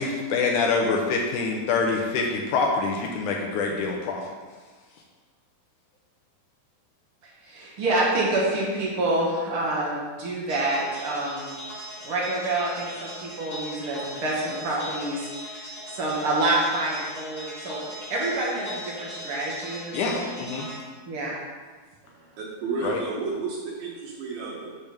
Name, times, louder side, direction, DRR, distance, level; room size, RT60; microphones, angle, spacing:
voice 1, 0.0-4.2 19.9-20.7 22.8-23.0, left 4 dB, 75° left, 0 dB, 1.8 m, -25 dB
voice 2, 7.4-11.6 12.0-15.7 15.9-17.8 18.1-20.3 21.1-21.3, right 2 dB, 55° right, -5 dB, 1.6 m, -27 dB
sound 1, 10.5-20.8, equal, 20° left, 0.8 m, -39 dB
voice 3, 22.0-24.8, right 4 dB, 80° right, -6 dB, 2.9 m, -32 dB
8.9 x 3.5 x 5.8 m, 1.4 s
omnidirectional pair, 4.2 m